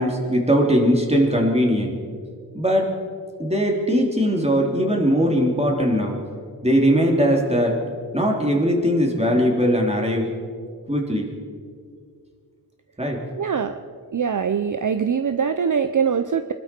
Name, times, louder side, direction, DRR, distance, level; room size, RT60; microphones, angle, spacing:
voice 1, 0.0-1.9 2.5-3.0 3.4-6.2 6.6-7.8 8.1-10.3 10.9-11.3 13.0-13.2, equal, 15° right, 0 dB, 3.1 m, -20 dB
voice 2, 13.4-13.8 14.1-16.5, right 6 dB, 50° right, 9 dB, 0.7 m, -23 dB
25.0 x 12.5 x 4.5 m, 2.1 s
wide cardioid pair, 65°, 39 cm